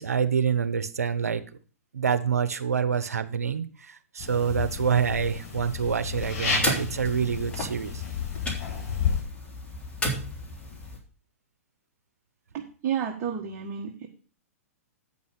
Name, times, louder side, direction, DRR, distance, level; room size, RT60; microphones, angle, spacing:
voice 1, 0.0-1.4 1.9-8.0, right 7 dB, 85° right, 11 dB, 0.9 m, -27 dB
sound 1, 4.2-9.2, left 6 dB, 40° left, 5.7 m, -31 dB
sound 2, 6.2-11.0, left 1 dB, 15° left, 3.0 m, -33 dB
voice 2, 12.5-14.1, right 8 dB, 35° right, 1 dB, 1.5 m, -31 dB
8.9 x 5.5 x 6.5 m, 0.39 s
hypercardioid pair, 115°, 8 cm